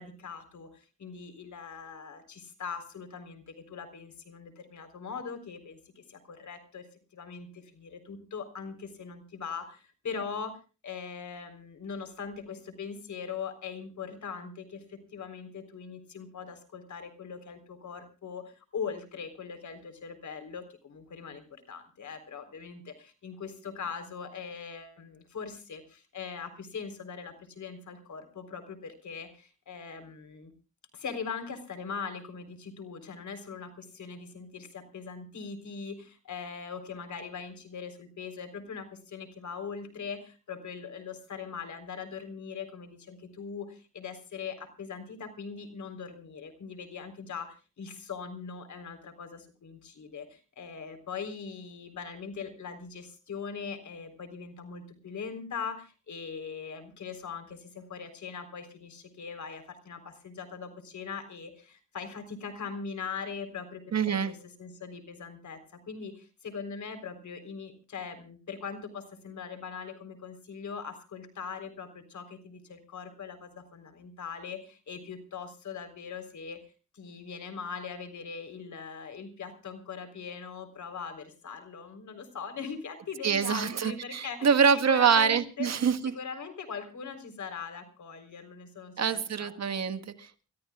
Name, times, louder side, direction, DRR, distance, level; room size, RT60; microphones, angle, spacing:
voice 1, 0.0-6.9 7.1-30.5 30.9-65.6 65.9-76.6 76.9-85.7 86.1-89.5, left 6 dB, 65° left, 3.8 m, -41 dB
voice 2, 63.9-64.3 83.2-86.1 89.0-90.4, right 6 dB, 55° right, 1.6 m, -25 dB
29.5 x 14.0 x 2.4 m
cardioid pair, 80°, 32 cm